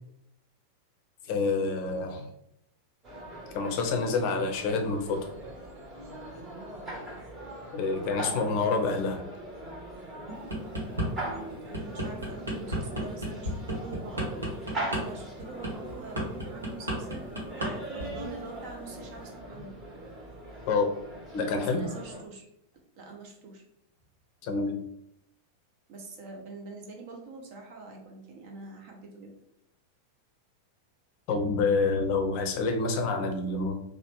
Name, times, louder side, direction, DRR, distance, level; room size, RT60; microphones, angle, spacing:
voice 1, 1.3-2.3 3.5-5.4 7.7-9.2 20.7-20.9 21.3-21.9 24.4-24.8 31.3-33.7, left 4 dB, 45° left, 5 dB, 0.5 m, -27 dB
sound 1, 3.0-22.2, right 1 dB, 25° right, 1.0 m, -41 dB
sound 2, 10.3-11.1 11.5-17.7 18.0-18.3, right 1 dB, 75° right, 0.8 m, -32 dB
voice 2, 11.2-19.7 21.5-22.4 22.9-23.6 25.9-29.3, right 3 dB, 45° right, 1 dB, 0.7 m, -45 dB
2.9 x 2.0 x 3.0 m, 0.76 s
figure-of-eight pair, 90°, 0 cm